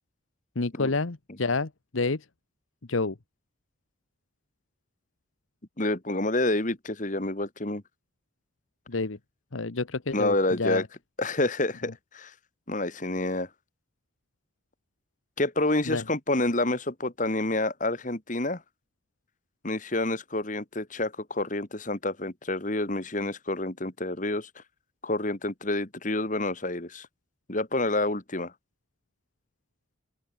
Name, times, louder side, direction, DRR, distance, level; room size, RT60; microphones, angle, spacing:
voice 1, 0.5-2.2 2.9-3.2 8.9-9.2 9.5-10.9 15.8-16.0, left 3 dB, 80° left, 1.2 m, -29 dB
voice 2, 5.8-7.8 10.1-10.8 11.2-12.3 12.7-13.5 15.4-18.6 19.6-24.5 25.0-27.1 27.5-28.5, left 2 dB, 40° left, 2.2 m, -28 dB
open air
head